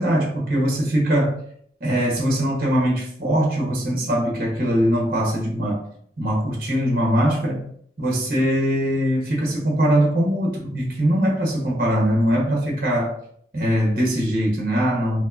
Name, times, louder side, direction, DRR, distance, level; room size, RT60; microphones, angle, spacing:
voice 1, 0.0-1.4 1.8-5.8 6.2-7.7 8.0-13.1 13.5-15.2, equal, 50° right, -2 dB, 1.1 m, -21 dB
5.0 x 2.1 x 2.6 m, 0.64 s
head